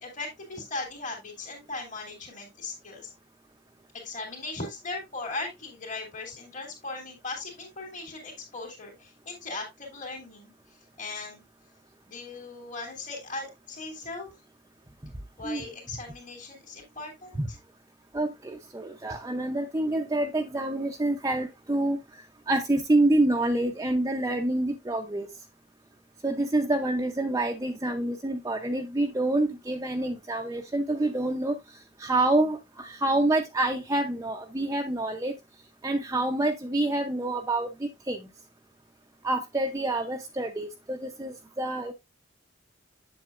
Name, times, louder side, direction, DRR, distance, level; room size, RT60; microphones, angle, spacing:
voice 1, 0.0-3.1 4.0-10.5 11.0-11.4 12.1-14.3 15.4-17.6, left 3 dB, 40° left, -1 dB, 2.7 m, -38 dB
voice 2, 18.1-22.0 22.5-25.3 26.2-31.6 32.0-35.3 35.8-38.2 39.2-41.9, right 2 dB, 15° right, 3 dB, 0.6 m, -27 dB
7.9 x 7.4 x 2.4 m, 0.21 s
head